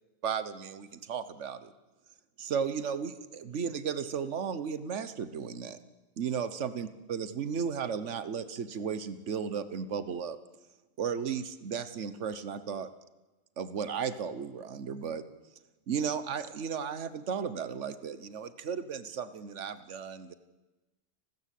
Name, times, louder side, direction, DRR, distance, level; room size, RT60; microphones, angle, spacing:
voice 1, 0.2-1.7 2.4-5.8 6.2-10.4 11.0-12.9 13.6-15.2 15.9-20.3, right 7 dB, 80° right, 13 dB, 1.4 m, -35 dB
30.0 x 13.5 x 8.4 m, 1.1 s
omnidirectional pair, 1.2 m